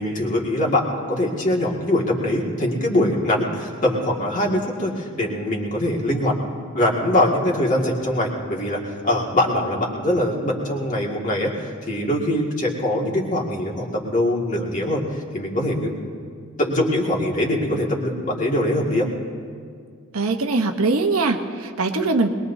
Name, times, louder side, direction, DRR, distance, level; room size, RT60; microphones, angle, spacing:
voice 1, 0.0-6.4 6.7-15.1 15.3-15.9 16.6-19.1, left 1 dB, 35° left, -2 dB, 2.0 m, -22 dB
voice 2, 20.1-22.3, right 3 dB, 85° right, 5 dB, 1.0 m, -21 dB
21.5 x 21.5 x 2.7 m, 2.2 s
head